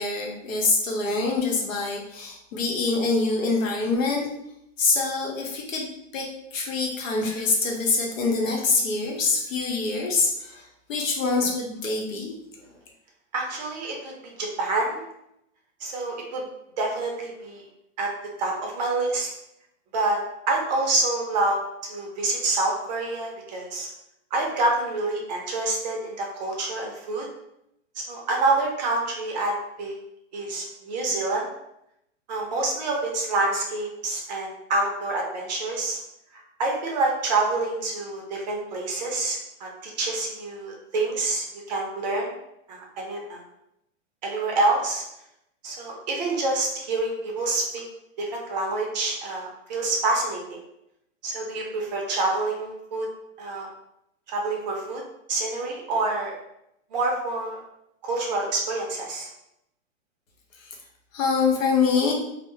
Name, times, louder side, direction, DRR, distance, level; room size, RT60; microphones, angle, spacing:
voice 1, 0.0-4.3 4.8-5.9 6.1-12.7 60.5-60.8 61.1-62.1, left 4 dB, 85° left, 0 dB, 0.8 m, -25 dB
voice 2, 13.3-15.1 15.8-16.4 16.8-17.6 18.0-18.1 18.4-19.3 19.9-20.2 20.5-21.6 21.9-23.9 24.3-27.3 28.0-29.9 30.3-31.5 32.3-36.0 36.3-42.3 42.7-43.4 44.2-45.0 45.6-47.8 48.2-50.6 51.2-53.1 53.4-53.7 54.3-55.0 55.3-56.3 56.9-57.6 58.0-59.3, right 2 dB, 35° right, 0 dB, 0.5 m, -27 dB
2.1 x 2.0 x 3.0 m, 0.81 s
hypercardioid pair, 145°, 39 cm